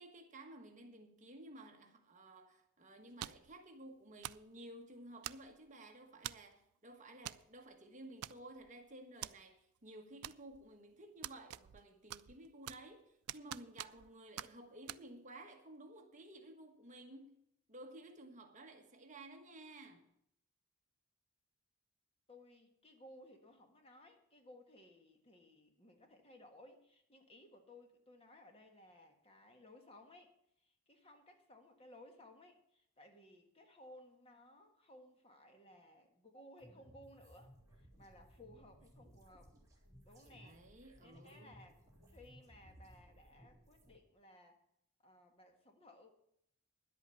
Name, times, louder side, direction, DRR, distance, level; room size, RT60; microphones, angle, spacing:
voice 1, 0.0-17.4 17.7-20.1 38.0-38.2 40.2-41.6, right 1 dB, 35° right, 1.4 m, -55 dB
sound 1, 3.2-3.5 4.2-4.5 5.2-5.7 6.2-6.5 7.2-7.4 7.7-7.8 8.2-8.7 9.2-9.3 10.2-10.7 11.2-11.8 12.1-12.9 13.3-14.1 14.4-14.5 14.9-15.0, right 13 dB, 85° right, 0.4 m, -46 dB
voice 2, 22.3-30.3 30.6-39.5 40.0-40.6 41.0-41.8 42.1-44.6 45.0-46.1, left 1 dB, 25° left, 1.6 m, -60 dB
sound 2, 36.6-43.9, equal, 15° right, 3.5 m, -61 dB
11.0 x 8.3 x 7.0 m
head